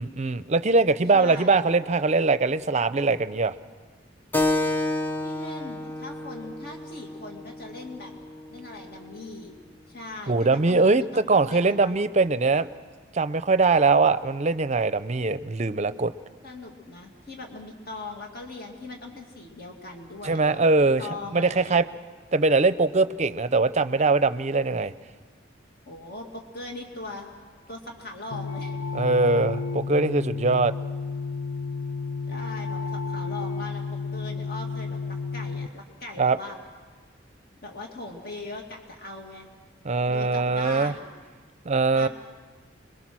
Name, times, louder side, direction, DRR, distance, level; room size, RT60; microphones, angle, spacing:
voice 1, 0.0-3.6 10.3-12.7 13.1-16.1 20.2-21.0 21.3-21.8 22.3-24.9 28.9-30.7 36.2-36.4 39.8-40.9 41.7-42.1, right 3 dB, 35° right, 14 dB, 0.6 m, -22 dB
voice 2, 1.1-1.6 5.2-8.1 8.5-9.5 9.9-12.0 16.4-21.8 25.9-27.3 27.7-28.8 32.3-36.6 37.6-39.5 40.1-41.0 41.9-42.1, left 2 dB, 50° left, 2 dB, 2.4 m, -40 dB
Keyboard (musical), 4.3-9.4, left 1 dB, 10° left, 0.7 m, -30 dB
sound 1, 28.3-35.7, left 4 dB, 75° left, 0.6 m, -32 dB
26.5 x 22.5 x 6.2 m, 1.4 s
head